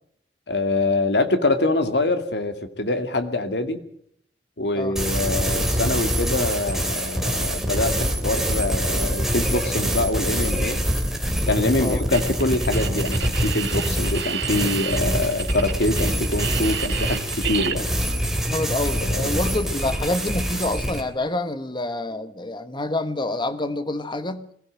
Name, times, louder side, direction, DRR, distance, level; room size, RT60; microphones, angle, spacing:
voice 1, 0.5-3.8 4.6-10.8 11.5-17.9 18.8-19.3, left 2 dB, 70° left, 2.3 m, -24 dB
sound 1, 5.0-21.0, equal, 5° right, 3.0 m, -25 dB
sound 2, 12.1-17.7, right 8 dB, 80° right, 2.1 m, -30 dB
voice 2, 18.5-24.5, left 2 dB, 25° left, 1.4 m, -27 dB
22.0 x 15.5 x 8.9 m
head